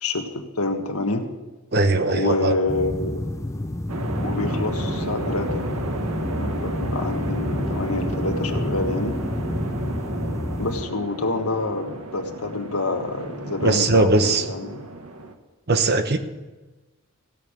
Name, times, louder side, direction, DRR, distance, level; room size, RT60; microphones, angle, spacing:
voice 1, 0.0-1.2 2.1-3.3 4.2-5.7 6.3-9.2 10.6-14.8, left 2 dB, 85° left, 5 dB, 1.5 m, -27 dB
voice 2, 1.7-2.5 13.6-14.4 15.7-16.2, right 2 dB, 45° right, 8 dB, 1.0 m, -19 dB
sound 1, 2.7-10.8, left 1 dB, 15° left, 0.5 m, -29 dB
sound 2, 3.9-15.3, right 2 dB, 90° right, 1.3 m, -33 dB
16.0 x 6.6 x 8.8 m, 1.2 s
head